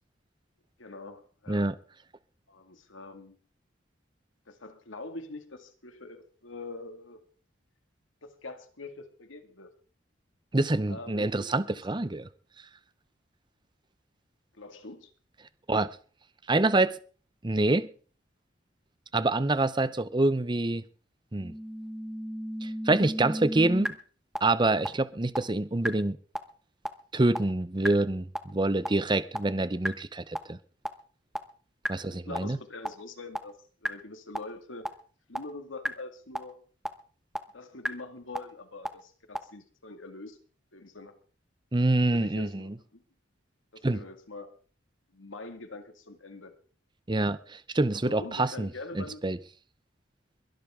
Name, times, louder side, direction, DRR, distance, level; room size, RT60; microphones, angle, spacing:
voice 1, 0.8-1.7 2.5-3.4 4.5-7.2 8.4-9.7 10.8-11.8 14.5-15.1 31.9-34.9 35.3-36.6 37.5-40.4 40.7-41.1 42.1-43.0 43.7-44.5 45.1-46.5 48.0-49.2, left 2 dB, 90° left, 2.1 m, -44 dB
voice 2, 10.5-12.3 15.7-15.9 16.5-17.0 17.4-17.9 19.1-20.8 21.3-21.5 22.6-24.0 24.4-26.2 27.1-30.6 31.9-32.6 41.7-42.7 43.8-44.0 47.1-48.7 48.9-49.4, right 2 dB, 25° right, 0.7 m, -26 dB
sound 1, 21.4-23.9 24.4-24.5 24.9-25.0 25.4-25.5 25.9-26.0 26.4-26.5 26.9-27.0 27.4-27.5 27.9-28.0 28.4-28.5 28.9-29.0 29.4-29.5 29.9-30.0 30.4-30.5 30.9-31.0 31.4-31.5 31.9-32.0 32.4-32.5 32.9-33.0 33.4-33.5 33.9-34.0 34.4-34.5 34.9-35.0 35.4-35.5 35.9-36.0 36.4-36.5 36.9-37.0 37.4-37.5 37.9-38.0 38.4-38.5 38.9-39.0 39.4-39.5, equal, ahead, 0.9 m, -31 dB
22.5 x 12.0 x 3.7 m
head